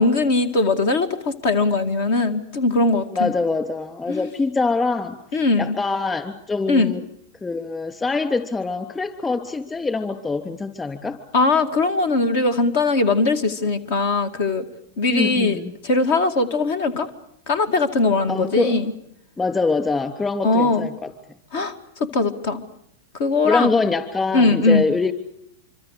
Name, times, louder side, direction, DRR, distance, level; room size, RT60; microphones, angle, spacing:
voice 1, 0.0-3.3 4.1-4.3 5.3-5.8 6.7-6.9 11.3-14.7 15.0-17.1 17.5-18.9 20.4-20.9 21.5-22.6 23.2-23.8 24.3-24.8, left 3 dB, 65° left, 11 dB, 2.2 m, -20 dB
voice 2, 3.1-5.2 5.6-7.0 7.4-11.2 15.1-15.7 18.3-18.8 19.4-21.1 23.4-25.1, left 3 dB, 15° left, 10 dB, 3.3 m, -24 dB
25.5 x 25.5 x 6.6 m, 0.73 s
hypercardioid pair, 110°, 0 cm